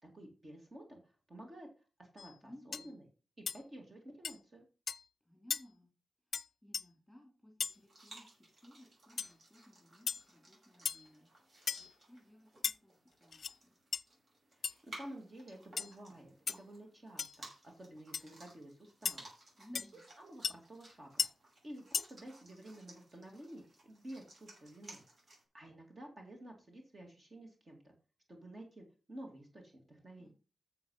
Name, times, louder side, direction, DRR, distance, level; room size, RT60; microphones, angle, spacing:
voice 1, 0.0-3.0 3.4-4.7 14.6-19.3 20.2-21.2 21.6-25.0 25.3-27.9 28.3-30.3, right 1 dB, 30° right, 2 dB, 2.2 m, -52 dB
sound 1, 2.2-2.3 2.7-2.9 3.5-3.6 4.2-4.4 4.9-5.0 5.5-5.6 6.3-6.5 6.7-6.8 7.6-7.8 9.2-9.3 10.1-10.2 10.9-11.1 11.7-11.9 12.6-12.8 13.3-13.5 13.9-14.0 14.6-14.7 15.8-15.9 16.5-16.6 17.2-17.4 18.1-18.2 19.1-19.2 19.8-19.9 20.4-20.5 21.2-21.3 21.9-22.1, left 6 dB, 65° left, 0.4 m, -36 dB
voice 2, 2.4-2.9 5.2-5.9 6.3-11.3 11.8-13.8 19.6-20.1 30.2-30.3, equal, ahead, 0 dB, 3.3 m, -59 dB
sound 2, 7.6-25.4, right 1 dB, 45° right, 6.7 m, -58 dB
10.5 x 7.0 x 5.5 m, 0.35 s
wide cardioid pair, 175°, 0 cm